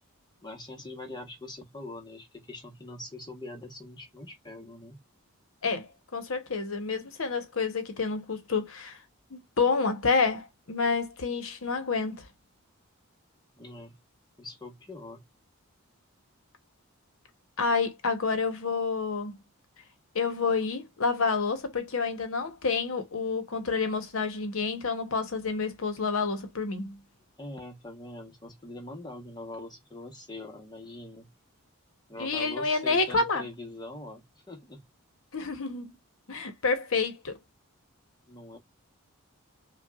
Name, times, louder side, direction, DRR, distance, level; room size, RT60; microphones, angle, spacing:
voice 1, 0.4-5.0 13.6-14.0 14.4-15.2 27.4-31.3 32.1-34.9 38.3-38.6, left 2 dB, 20° left, 1.0 m, -43 dB
voice 2, 5.6-9.0 9.3-12.2 17.6-19.3 20.1-27.0 32.2-33.4 35.3-35.9 36.3-37.4, left 4 dB, 70° left, 0.9 m, -29 dB
5.5 x 2.2 x 2.3 m
head